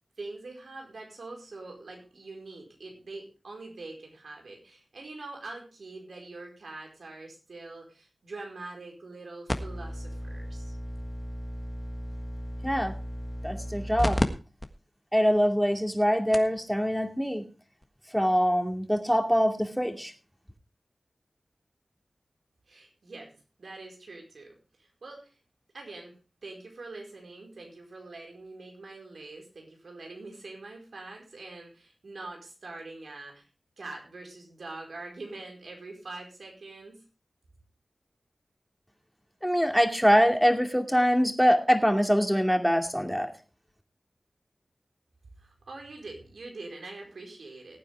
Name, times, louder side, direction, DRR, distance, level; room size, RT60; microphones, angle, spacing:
voice 1, 0.2-10.7 22.7-23.3 23.6-25.3 25.7-26.1 26.4-33.4 33.8-37.0 45.4-47.8, right 2 dB, 85° right, 1 dB, 4.7 m, -44 dB
sound 1, 9.5-14.3 14.6-14.7 15.4-15.5 16.0-16.1 16.3-16.6 17.8-17.9, equal, 20° left, 1.5 m, -33 dB
voice 2, 12.6-12.9 13.4-14.2 15.1-17.4 18.1-20.1 39.4-43.3, equal, ahead, 4 dB, 2.4 m, -24 dB
20.0 x 9.1 x 3.5 m, 0.34 s
wide cardioid pair, 60°, 0 cm